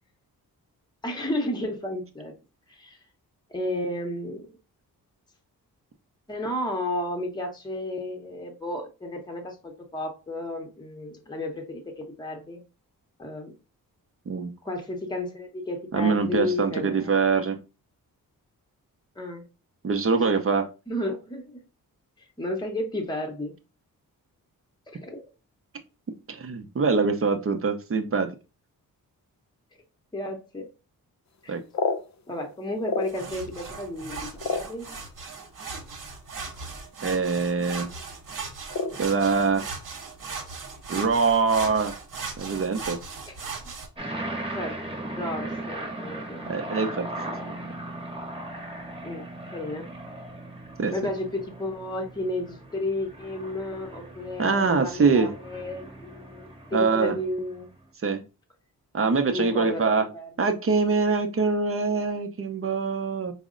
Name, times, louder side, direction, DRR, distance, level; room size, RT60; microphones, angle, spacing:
voice 1, 1.0-2.3 2.7-3.0 3.5-4.5 6.3-12.6 13.2-13.5 14.6-17.1 19.2-19.4 20.9-21.6 22.2-23.5 24.9-25.2 30.1-30.7 31.4-31.6 32.3-34.9 43.3-43.4 43.6-43.7 44.5-46.5 49.0-49.9 50.9-57.7 58.9-59.0 59.3-60.3, left 1 dB, 10° left, 2 dB, 0.8 m, -33 dB
voice 2, 15.9-17.6 19.8-20.7 26.3-28.3 31.5-31.6 37.0-37.9 39.0-39.6 40.9-41.9 42.4-43.0 46.5-47.1 50.8-50.9 54.4-55.3 56.7-57.2 58.0-58.2 58.9-60.0 60.4-63.3, right 4 dB, 40° right, 7 dB, 0.6 m, -24 dB
sound 1, 31.4-33.5 33.9-35.3 36.1-36.2 36.5-36.8 37.1-37.5 37.8-38.0 38.7-39.7 40.0-40.9 41.1-41.2 41.6-41.9 42.4-42.8, left 4 dB, 50° left, 0.5 m, -31 dB
sound 2, 33.1-43.9, right 4 dB, 60° right, 1.1 m, -38 dB
sound 3, 44.0-57.6, right 1 dB, 15° right, 1.0 m, -38 dB
4.7 x 2.1 x 3.7 m, 0.31 s
wide cardioid pair, 110°, 36 cm